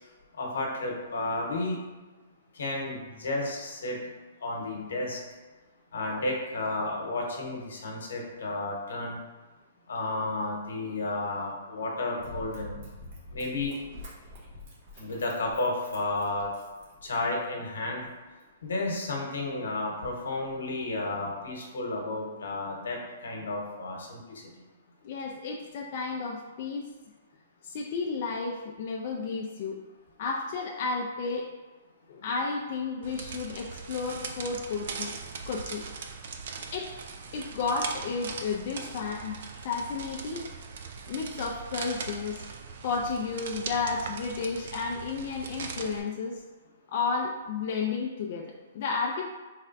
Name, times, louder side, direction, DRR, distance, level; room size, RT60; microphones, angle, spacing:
voice 1, 0.4-1.8 2.6-4.0 4.4-5.2 5.9-9.2 9.9-12.8 13.3-13.7 15.0-16.5 17.0-18.0 18.6-24.2, left 2 dB, 80° left, 0 dB, 1.0 m, -32 dB
Run, 12.2-17.4 18.0-18.1, left 1 dB, 45° right, 1.0 m, -46 dB
voice 2, 25.0-26.9 27.6-29.8 30.2-31.5 32.1-35.1 35.5-35.8 36.7-36.9 37.3-40.5 41.1-42.4 42.8-46.4 46.9-49.3, left 4 dB, 50° left, -1 dB, 0.4 m, -32 dB
sound 1, 33.0-46.0, right 5 dB, 60° right, 0.4 m, -40 dB
4.2 x 3.2 x 2.5 m, 1.3 s
hypercardioid pair, 145°, 0 cm